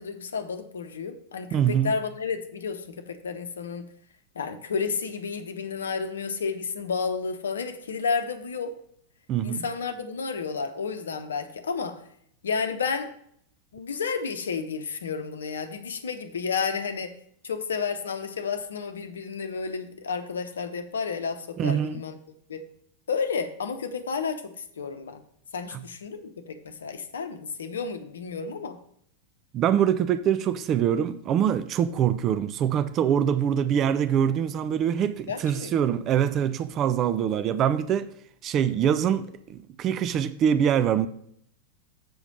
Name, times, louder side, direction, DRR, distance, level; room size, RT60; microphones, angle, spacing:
voice 1, 0.0-3.9 4.3-8.7 9.4-12.0 12.4-13.1 13.7-17.1 17.4-22.1 22.5-22.6 23.1-25.2 25.5-28.8 35.3-35.7, left 5 dB, 65° left, 0.8 m, -31 dB
voice 2, 1.5-1.9 9.3-9.7 21.6-22.0 25.7-25.8 29.5-38.1 38.4-41.1, right 9 dB, 35° right, 0.4 m, -24 dB
7.8 x 5.0 x 5.2 m
figure-of-eight pair, 90°, 0 cm